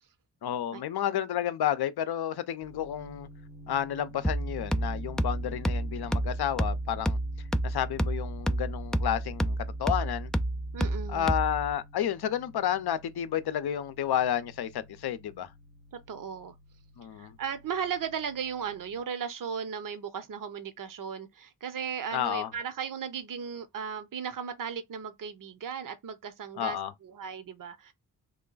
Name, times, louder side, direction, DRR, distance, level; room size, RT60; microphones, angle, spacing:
voice 1, 0.4-3.3 3.7-7.2 7.6-10.3 11.1-15.5 17.0-17.4 22.1-22.5 26.6-26.9, left 10 dB, 60° left, 0.7 m, -31 dB
sound 1, 2.6-19.0, equal, 85° right, 1.1 m, -51 dB
sound 2, 4.2-11.8, right 1 dB, ahead, 0.3 m, -30 dB
voice 2, 10.7-11.3 15.9-16.5 17.1-27.9, right 7 dB, 45° right, 0.8 m, -36 dB
3.2 x 2.2 x 3.9 m
supercardioid pair, 45°, 44 cm